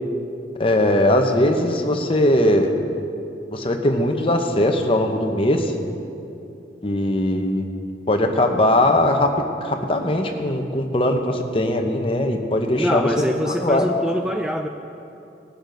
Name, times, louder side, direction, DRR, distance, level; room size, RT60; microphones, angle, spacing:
voice 1, 0.6-2.7 3.5-5.7 6.8-7.7 8.1-13.1 13.5-13.9, left 1 dB, 30° left, 4 dB, 0.9 m, -20 dB
voice 2, 12.7-14.7, equal, 5° right, 4 dB, 0.3 m, -24 dB
19.0 x 7.1 x 5.2 m, 2.8 s
head